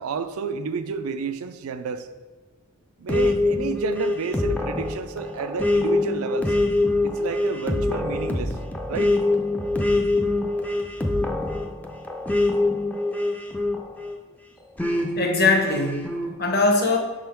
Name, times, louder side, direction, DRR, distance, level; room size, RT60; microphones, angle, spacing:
voice 1, 0.0-2.1 3.0-6.6 7.0-8.6 8.9-9.2, right 5 dB, 80° right, 10 dB, 0.4 m, -30 dB
sound 1, 3.1-14.2 14.8-16.3, left 2 dB, 5° left, 0.4 m, -24 dB
voice 2, 15.2-17.0, left 3 dB, 45° left, 1 dB, 0.9 m, -21 dB
5.9 x 3.7 x 4.4 m, 1.2 s
head